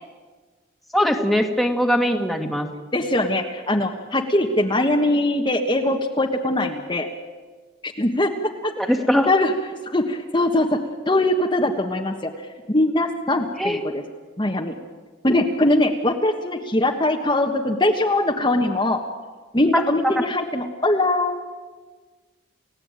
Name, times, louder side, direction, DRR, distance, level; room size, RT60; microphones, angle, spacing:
voice 1, 0.9-2.7 8.8-9.3 13.6-13.8 19.7-19.8 20.2-20.3, equal, ahead, 3 dB, 1.9 m, -20 dB
voice 2, 2.9-7.1 7.8-8.7 9.3-9.5 9.9-10.8 11.1-13.9 14.4-14.7 15.2-19.0 19.5-21.4, left 1 dB, 25° left, 2 dB, 1.4 m, -21 dB
30.0 x 16.5 x 9.0 m, 1.4 s
head